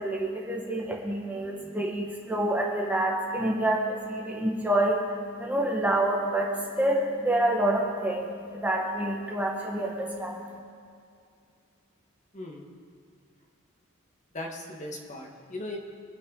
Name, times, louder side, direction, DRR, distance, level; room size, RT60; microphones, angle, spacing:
voice 1, 0.0-10.6, right 1 dB, 10° right, -2 dB, 1.4 m, -28 dB
voice 2, 14.3-15.8, left 1 dB, 35° left, 0 dB, 1.5 m, -38 dB
25.0 x 9.1 x 3.9 m, 2.3 s
head